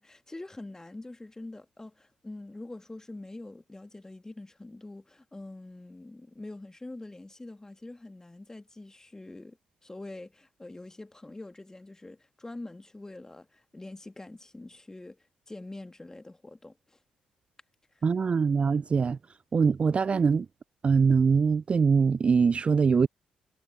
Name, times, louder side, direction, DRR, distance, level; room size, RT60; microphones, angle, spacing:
voice 1, 0.0-17.0 17.9-18.0, left 2 dB, 15° left, 2.5 m, -45 dB
voice 2, 18.0-19.2 19.5-20.5 20.8-23.1, right 5 dB, 35° right, 0.3 m, -23 dB
figure-of-eight pair, 40°, 3 cm